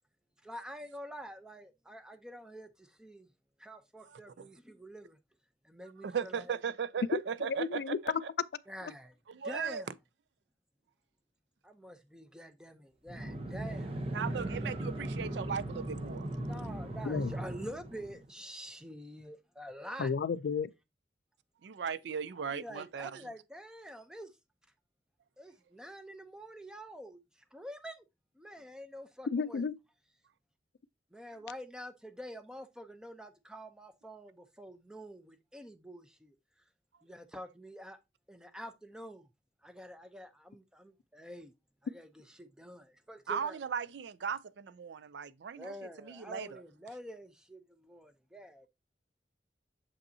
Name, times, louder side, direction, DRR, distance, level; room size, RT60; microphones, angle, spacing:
voice 1, 0.4-3.3 3.6-5.2 5.6-6.6 8.7-9.2 9.4-9.9 11.6-14.0 16.4-20.1 22.4-24.3 25.4-28.0 28.4-29.7 31.1-36.4 37.0-38.0 38.3-39.3 39.6-41.5 41.8-43.5 45.6-48.7, equal, 5° right, 0.6 m, -47 dB
voice 2, 4.0-4.5 6.0-8.3 9.3-9.8 14.1-16.3 21.6-23.2 43.3-45.7 46.0-46.6, right 6 dB, 80° right, 0.4 m, -37 dB
voice 3, 7.6-8.0 17.1-17.3 20.0-20.7 29.3-29.8, left 5 dB, 65° left, 0.3 m, -32 dB
sound 1, 13.1-18.3, right 1 dB, 35° right, 0.8 m, -38 dB
7.1 x 5.3 x 2.7 m
head